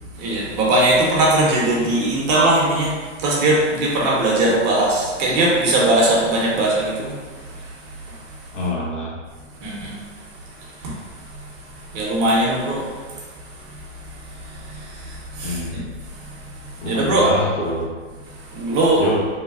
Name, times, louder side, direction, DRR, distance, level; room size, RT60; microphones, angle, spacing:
voice 1, 0.2-7.2 7.5-7.6 9.6-10.0 10.8-11.0 11.9-12.9 14.4-15.6 16.1-17.3 18.5-19.0, right 1 dB, 35° right, -4 dB, 0.6 m, -20 dB
voice 2, 8.5-9.2 15.4-15.8 16.8-17.9 18.9-19.3, left 1 dB, 70° left, -2 dB, 0.8 m, -25 dB
2.7 x 2.2 x 2.4 m, 1.4 s
hypercardioid pair, 120°, 37 cm